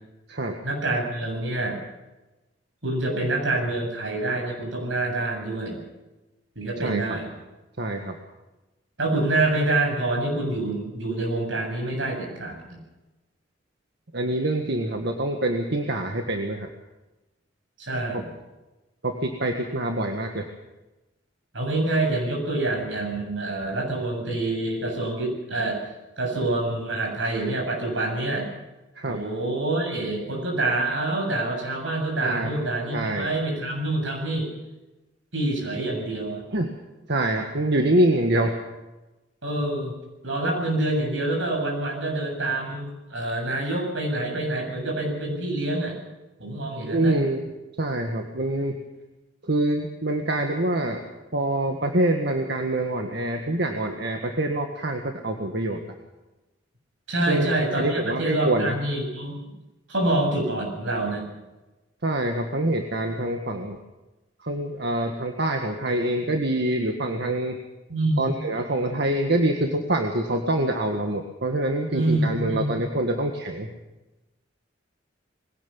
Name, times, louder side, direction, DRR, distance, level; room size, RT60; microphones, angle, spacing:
voice 1, 0.6-1.8 2.8-5.8 6.6-7.3 9.0-12.8 17.8-18.2 21.5-25.8 26.2-28.5 29.0-34.5 35.3-36.4 39.4-39.9 40.2-46.0 46.4-47.2 57.1-59.5 59.9-61.3 67.9-68.3 71.9-72.8, right 2 dB, 85° right, 1 dB, 7.5 m, -26 dB
voice 2, 6.8-7.2 7.8-8.2 14.1-16.7 18.1-18.2 19.0-20.5 28.9-29.2 32.2-32.5 32.9-33.3 36.5-36.7 37.1-38.5 46.8-47.5 47.8-48.8 49.4-51.0 51.3-55.8 57.3-58.8 62.0-63.8 64.4-67.6 68.2-73.7, right 1 dB, 65° right, 4 dB, 1.7 m, -25 dB
21.5 x 17.0 x 7.1 m, 1.0 s
head